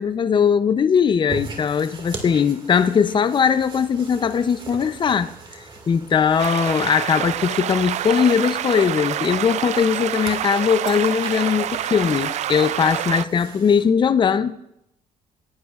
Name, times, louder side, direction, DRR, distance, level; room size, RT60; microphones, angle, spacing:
voice 1, 0.0-5.3 5.9-14.5, left 7 dB, 35° left, 0.6 m, -20 dB
sound 1, 1.3-13.8, right 3 dB, 35° right, 2.0 m, -40 dB
sound 2, 6.4-13.3, right 11 dB, 50° right, 0.4 m, -27 dB
18.5 x 11.5 x 2.4 m
cardioid pair, 90°, 14 cm